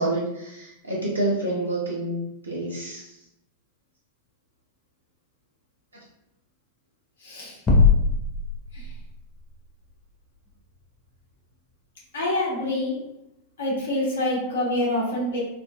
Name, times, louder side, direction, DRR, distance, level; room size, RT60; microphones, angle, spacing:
voice 1, 0.0-2.2 2.4-3.2, right 2 dB, 75° right, -5 dB, 0.6 m, -28 dB
voice 2, 7.2-7.6 8.7-8.9 12.1-13.0 13.6-15.4, left 1 dB, 65° left, -4 dB, 1.0 m, -26 dB
sound 1, 7.7-9.3, left 4 dB, 20° left, 0.6 m, -20 dB
2.3 x 2.1 x 2.8 m, 0.85 s
figure-of-eight pair, 90°, 0 cm